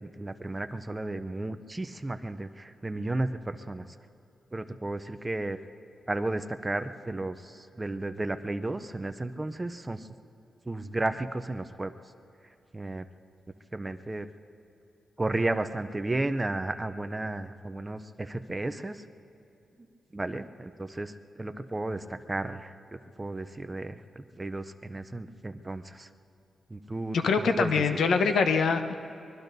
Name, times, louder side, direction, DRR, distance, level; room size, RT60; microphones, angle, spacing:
voice 1, 0.0-3.9 4.5-5.6 6.1-10.1 10.7-11.9 12.7-13.0 13.7-14.3 15.2-19.0 20.1-26.1 26.7-28.0, right 2 dB, 15° right, 10 dB, 0.5 m, -33 dB
voice 2, 27.1-29.0, left 5 dB, 80° left, 7 dB, 0.9 m, -24 dB
24.0 x 22.0 x 2.7 m, 2.9 s
wide cardioid pair, 160°, 0 cm